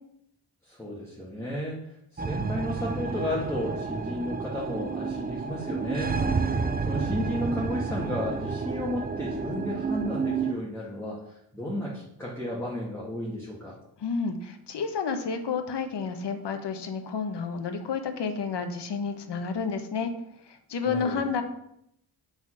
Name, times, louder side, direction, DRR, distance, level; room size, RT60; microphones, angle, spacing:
voice 1, 0.6-6.2 6.9-13.8 20.9-21.2, left 1 dB, 5° left, -5 dB, 1.9 m, -33 dB
sound 1, 2.2-10.5, right 4 dB, 25° right, 0.5 m, -30 dB
voice 2, 14.0-20.1 20.4-21.4, left 5 dB, 90° left, 7 dB, 1.1 m, -30 dB
7.6 x 4.1 x 6.2 m, 0.75 s
wide cardioid pair, 90°, 41 cm